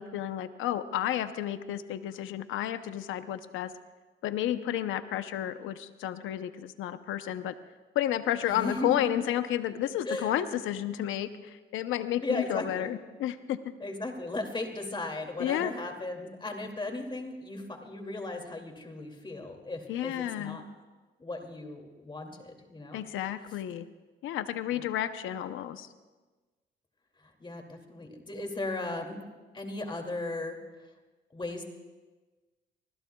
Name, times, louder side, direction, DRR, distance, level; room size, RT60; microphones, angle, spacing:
voice 1, 0.0-3.7 4.2-7.5 7.9-13.7 15.4-15.7 19.9-20.6 22.9-23.9 24.2-25.9, left 11 dB, 85° left, 10 dB, 0.7 m, -31 dB
voice 2, 8.4-9.2 10.0-10.3 12.2-12.9 13.8-20.6 21.2-23.0 24.7-24.8 27.2-29.3 29.5-30.6 31.3-31.7, left 2 dB, 25° left, 3 dB, 2.5 m, -36 dB
25.0 x 20.5 x 2.3 m, 1.3 s
cardioid pair, 90°, 20 cm